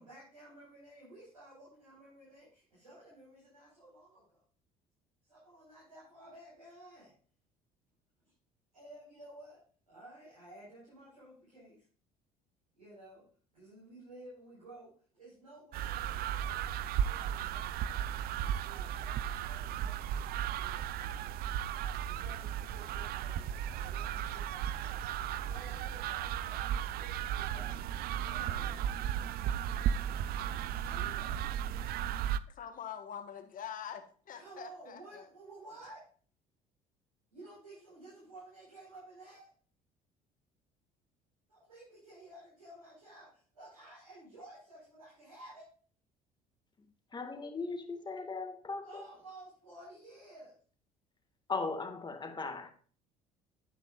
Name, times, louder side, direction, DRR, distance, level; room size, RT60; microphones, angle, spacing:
voice 1, 0.0-4.4 5.3-7.1 8.7-11.8 12.7-13.2 13.5-21.3 22.0-27.9 28.2-28.9 30.8-31.4 34.3-36.0 37.3-39.5 41.5-45.7 48.8-50.5, right 1 dB, 90° right, 4.8 m, -54 dB
sound 1, 15.7-32.4, right 10 dB, 55° right, 0.5 m, -35 dB
voice 2, 32.5-35.2, left 8 dB, 45° left, 1.5 m, -44 dB
voice 3, 47.1-49.0 51.5-52.7, left 4 dB, 25° left, 1.7 m, -38 dB
9.5 x 8.9 x 2.4 m
hypercardioid pair, 55°, 19 cm